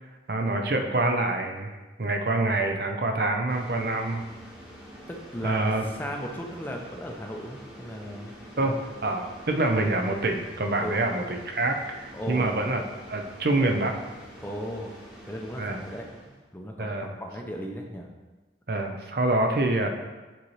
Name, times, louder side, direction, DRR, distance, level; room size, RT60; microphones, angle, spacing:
voice 1, 0.3-4.2 5.4-5.8 8.6-8.7 9.0-12.8 13.1-13.9 15.6-15.8 16.8-17.1 18.7-19.9, right 2 dB, 55° right, 4 dB, 0.6 m, -26 dB
sound 1, 3.5-16.5, equal, 5° right, 1.1 m, -47 dB
voice 2, 5.1-8.8 10.8-11.0 12.1-12.7 14.4-15.0 15.3-16.1 16.5-18.1, equal, 10° left, 1 dB, 0.5 m, -36 dB
9.0 x 4.2 x 3.2 m, 1.2 s
head